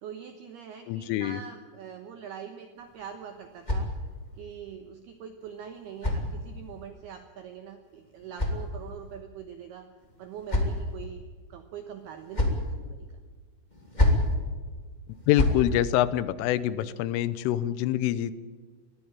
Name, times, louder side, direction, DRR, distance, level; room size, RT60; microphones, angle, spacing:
voice 1, 0.0-3.9 4.4-9.9 10.2-11.2 11.5-13.1, right 8 dB, 75° right, 7 dB, 2.4 m, -43 dB
voice 2, 0.9-1.4 15.3-18.3, left 13 dB, 80° left, 15 dB, 3.2 m, -25 dB
sound 1, 2.8-4.4 5.4-6.8 7.8-9.2 10.0-11.0 12.0-12.7 13.7-14.3 15.1-15.6, left 1 dB, 15° left, 1.7 m, -29 dB
21.5 x 14.5 x 9.0 m, 1.5 s
omnidirectional pair, 6.0 m